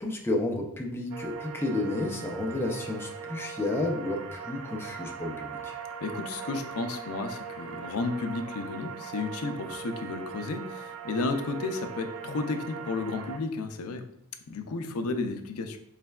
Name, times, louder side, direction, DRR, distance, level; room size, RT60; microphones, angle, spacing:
voice 1, 0.0-5.7, left 2 dB, 10° left, 1 dB, 0.5 m, -31 dB
sound 1, 1.1-13.4, right 6 dB, 65° right, 0.4 m, -40 dB
voice 2, 6.0-14.0 14.5-15.8, left 3 dB, 80° left, 7 dB, 0.4 m, -32 dB
4.2 x 3.2 x 2.3 m, 0.79 s
head